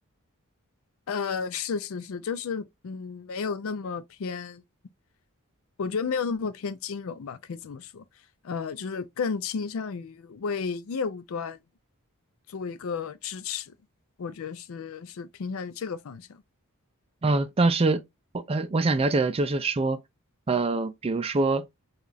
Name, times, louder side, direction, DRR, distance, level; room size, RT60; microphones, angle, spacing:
voice 1, 1.1-4.6 5.8-8.0 8.4-11.6 12.5-13.7 14.2-16.4, left 5 dB, 65° left, 0.4 m, -32 dB
voice 2, 17.2-18.0 18.3-20.0 20.5-21.6, right 3 dB, 25° right, 0.4 m, -24 dB
4.8 x 2.4 x 2.5 m
head